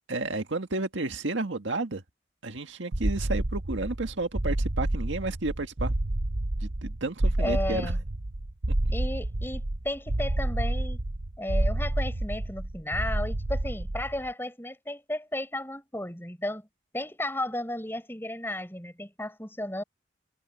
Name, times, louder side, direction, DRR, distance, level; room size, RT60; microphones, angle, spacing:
voice 1, 0.1-2.0 2.4-5.9 6.6-7.9, right 2 dB, 80° right, 1.7 m, -32 dB
Giant Walking, 2.9-14.3, right 1 dB, 50° right, 0.9 m, -29 dB
voice 2, 7.4-8.0 8.9-11.0 11.4-16.7 16.9-19.8, left 1 dB, 10° left, 4.6 m, -34 dB
head